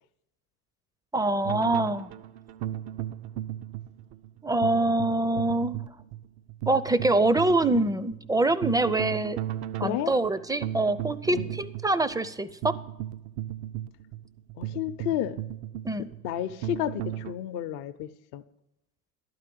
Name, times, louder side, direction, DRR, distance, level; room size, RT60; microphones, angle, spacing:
voice 1, 1.1-2.1 4.4-5.8 6.7-9.4 9.8-12.7 15.8-16.1, right 2 dB, 10° right, 15 dB, 0.4 m, -25 dB
sound 1, 1.4-17.3, right 12 dB, 65° right, 0.5 m, -36 dB
voice 2, 9.8-10.1 11.3-11.6 14.6-15.4 16.2-18.4, left 12 dB, 65° left, 10 dB, 0.7 m, -31 dB
11.5 x 4.7 x 7.8 m, 0.89 s
hypercardioid pair, 75°, 41 cm